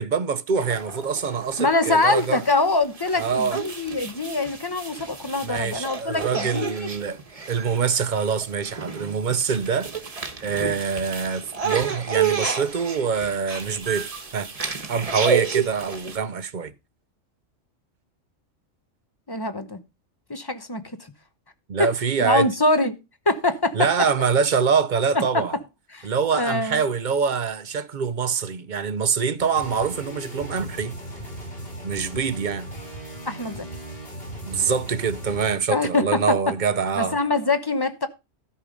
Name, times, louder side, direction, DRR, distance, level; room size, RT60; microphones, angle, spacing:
voice 1, 0.0-2.4 3.2-3.6 5.4-7.2 7.5-9.9 10.4-14.5 14.9-16.7 21.7-22.5 23.7-25.5 26.0-31.0 31.8-32.7 34.5-37.2, right 6 dB, 45° right, 0.7 m, -25 dB
sound 1, 0.6-16.2, right 6 dB, 30° right, 1.2 m, -31 dB
voice 2, 1.6-6.7 19.3-19.8 20.3-20.8 21.8-21.9 22.2-22.9 23.3-23.8 25.1-25.4 25.9-26.1 26.3-26.8 33.2-33.6 35.7-36.2 37.0-38.1, left 2 dB, 20° left, 0.8 m, -23 dB
sound 2, 29.4-35.6, right 1 dB, 45° left, 3.6 m, -37 dB
13.0 x 5.5 x 5.1 m
omnidirectional pair, 1.3 m